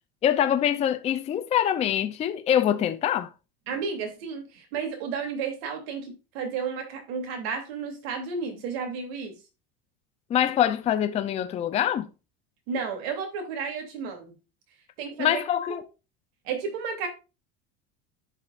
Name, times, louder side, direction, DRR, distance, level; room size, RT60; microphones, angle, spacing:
voice 1, 0.2-3.3 10.3-12.1 15.2-15.8, left 10 dB, 20° left, 0.5 m, -24 dB
voice 2, 3.7-9.3 12.7-14.3 15.0-15.4 16.4-17.1, right 5 dB, 80° right, 2.9 m, -32 dB
13.5 x 4.9 x 2.5 m
cardioid pair, 160°, 30 cm